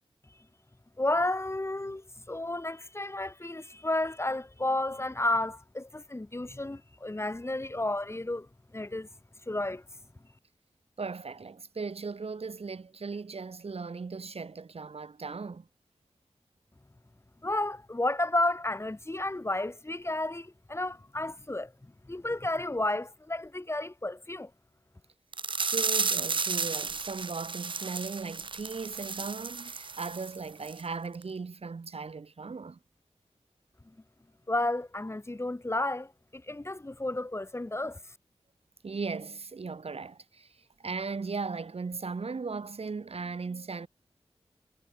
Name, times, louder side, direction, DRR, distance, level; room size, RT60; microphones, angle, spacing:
voice 1, 1.0-8.5 8.7-9.1 9.5-9.8 17.4-24.5 34.5-38.0, left 2 dB, 25° left, 2.4 m, -32 dB
voice 2, 11.0-15.7 25.6-32.8 38.8-43.9, right 4 dB, 70° right, 6.3 m, -37 dB
sound 1, 25.3-30.4 30.7-30.8 31.2-31.3, right 4 dB, 55° right, 0.7 m, -33 dB
wide cardioid pair, 70°, 10 cm